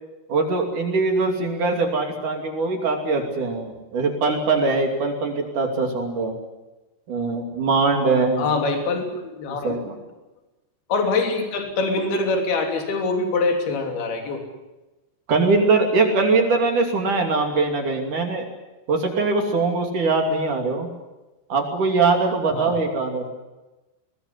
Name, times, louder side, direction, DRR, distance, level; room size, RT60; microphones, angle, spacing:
voice 1, 0.3-6.3 7.1-8.5 9.6-9.9 15.3-18.5 18.9-20.9 21.5-23.3, right 3 dB, 45° right, 3 dB, 3.8 m, -22 dB
voice 2, 8.4-9.0 9.3-9.8 10.9-14.4 22.5-22.7, left 3 dB, 55° left, 4 dB, 4.9 m, -24 dB
22.0 x 20.5 x 9.9 m, 1.1 s
omnidirectional pair, 5.7 m